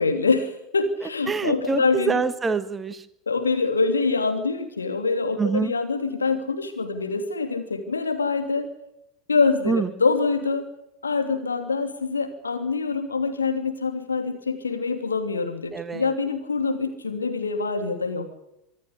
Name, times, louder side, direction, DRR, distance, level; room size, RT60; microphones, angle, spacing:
voice 1, 0.0-2.2 3.3-8.7 9.3-10.6 11.0-18.3, left 4 dB, 80° left, 7 dB, 2.9 m, -25 dB
voice 2, 1.3-3.0 5.4-5.7 9.6-9.9 15.7-16.1, right 5 dB, 20° right, 13 dB, 1.4 m, -25 dB
25.0 x 12.0 x 9.9 m, 0.82 s
figure-of-eight pair, 80°, 0 cm